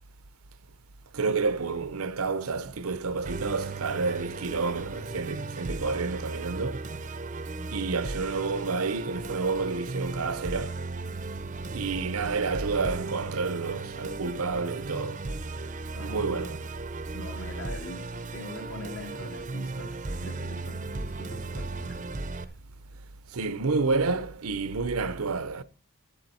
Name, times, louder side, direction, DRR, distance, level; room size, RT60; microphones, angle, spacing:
voice 1, 1.1-6.9 7.7-10.8 11.7-15.2 16.0-16.6 23.3-25.6, right 4 dB, 80° right, 0.7 m, -29 dB
Musical instrument, 3.2-22.4, right 3 dB, 35° right, 0.6 m, -36 dB
voice 2, 15.9-16.7 17.1-19.9 20.2-22.0, equal, 60° left, 2.7 m, -42 dB
11.5 x 7.9 x 4.3 m
head